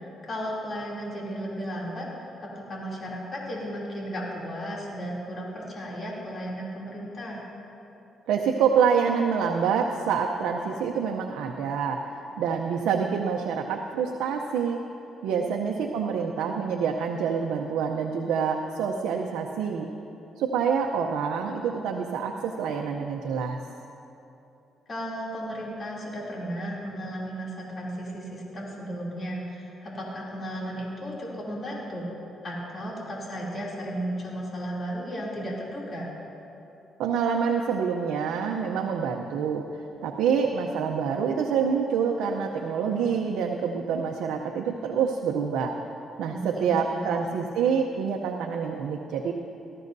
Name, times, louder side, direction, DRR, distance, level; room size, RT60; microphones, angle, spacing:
voice 1, 0.0-7.4 15.7-15.8 24.9-32.1 32.4-36.1 46.3-47.1, equal, 40° left, -5 dB, 2.9 m, -34 dB
voice 2, 8.3-12.0 12.4-14.8 15.2-19.9 20.4-23.6 37.0-45.7 46.2-49.3, right 6 dB, 90° right, 2 dB, 0.6 m, -26 dB
18.5 x 13.5 x 2.7 m, 2.9 s
cardioid pair, 90°, 0 cm